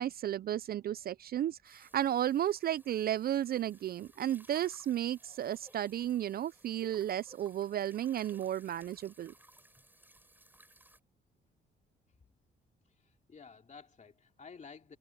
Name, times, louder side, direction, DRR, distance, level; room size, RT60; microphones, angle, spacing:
voice 1, 0.0-9.3, right 11 dB, 50° right, 0.4 m, -33 dB
sound 1, 1.6-11.0, right 1 dB, 10° right, 4.8 m, -61 dB
voice 2, 12.8-15.0, left 5 dB, 35° left, 2.7 m, -53 dB
cardioid pair, 90°, 20 cm